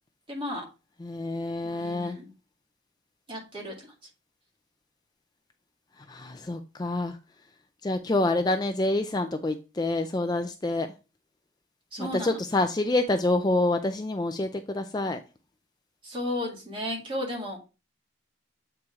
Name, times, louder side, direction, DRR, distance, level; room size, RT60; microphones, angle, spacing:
voice 1, 0.3-0.6 1.6-2.3 3.3-3.9 11.9-12.4 16.0-17.6, left 1 dB, 25° right, -1 dB, 2.2 m, -34 dB
voice 2, 1.0-2.2 6.0-7.2 7.8-10.9 12.0-15.2, left 2 dB, 20° left, 6 dB, 0.4 m, -27 dB
7.6 x 4.6 x 3.6 m, 0.30 s
head